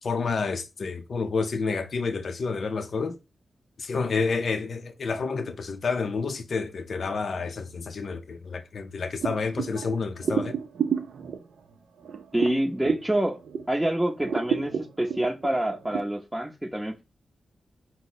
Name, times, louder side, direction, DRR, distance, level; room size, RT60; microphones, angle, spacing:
voice 1, 0.0-3.2 3.8-10.6, left 4 dB, 70° left, 0.4 m, -29 dB
sound 1, 9.2-13.8 14.2-16.0, right 7 dB, 85° right, 0.5 m, -31 dB
voice 2, 12.3-13.4 13.7-17.0, right 1 dB, 10° right, 0.6 m, -27 dB
4.7 x 2.0 x 4.0 m
cardioid pair, 65°, 0 cm